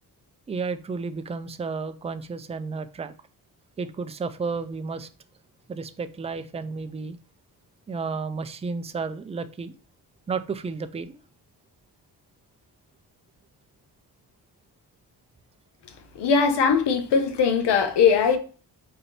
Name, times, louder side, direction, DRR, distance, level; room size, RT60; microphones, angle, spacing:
voice 1, 0.5-3.1 3.8-5.1 5.7-7.2 7.9-9.7 10.3-11.2, right 4 dB, 15° right, 0.4 m, -32 dB
voice 2, 16.2-18.4, left 6 dB, 85° left, 0.9 m, -20 dB
4.4 x 2.6 x 3.9 m
cardioid pair, 70°, 41 cm